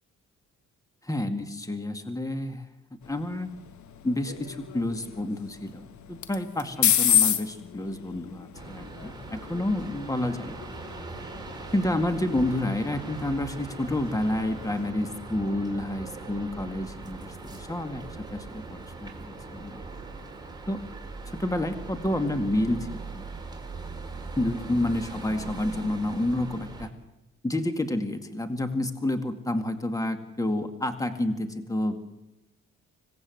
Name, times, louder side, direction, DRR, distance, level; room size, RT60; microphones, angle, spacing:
voice 1, 1.0-2.6 2.9-3.5 4.0-10.6 11.7-19.8 20.7-20.8 21.3-23.3 24.3-26.9 27.4-32.0, left 1 dB, 10° left, 8 dB, 2.1 m, -29 dB
sound 1, 3.0-14.9, left 9 dB, 70° left, 1.6 m, -31 dB
sound 2, 8.5-26.9, right 3 dB, 15° right, 4.0 m, -40 dB
25.5 x 18.0 x 8.0 m, 0.97 s
cardioid pair, 90°, 30 cm